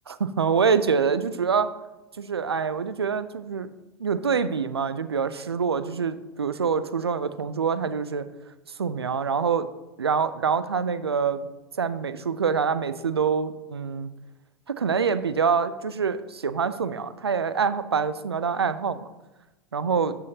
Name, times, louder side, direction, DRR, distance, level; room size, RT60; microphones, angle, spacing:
voice 1, 0.1-1.7 2.2-3.7 4.0-8.3 8.8-9.7 10.0-11.5 11.8-14.1 14.7-19.1 19.7-20.2, right 6 dB, 90° right, 13 dB, 0.4 m, -25 dB
8.9 x 7.0 x 2.8 m, 1.1 s
figure-of-eight pair, 85°, 13 cm